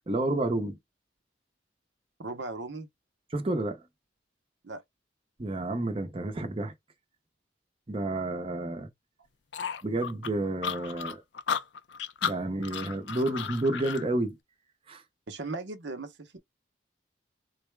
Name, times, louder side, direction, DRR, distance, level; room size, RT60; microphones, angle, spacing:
voice 1, 0.1-0.8 3.3-3.8 5.4-6.7 7.9-8.9 9.8-11.2 12.2-14.4 14.9-15.0, right 2 dB, 30° right, 0.7 m, -30 dB
voice 2, 2.2-2.9 4.6-4.8 15.3-16.4, right 3 dB, 70° right, 0.7 m, -37 dB
sound 1, 9.5-14.0, left 7 dB, 75° left, 0.5 m, -34 dB
4.0 x 2.2 x 3.2 m
head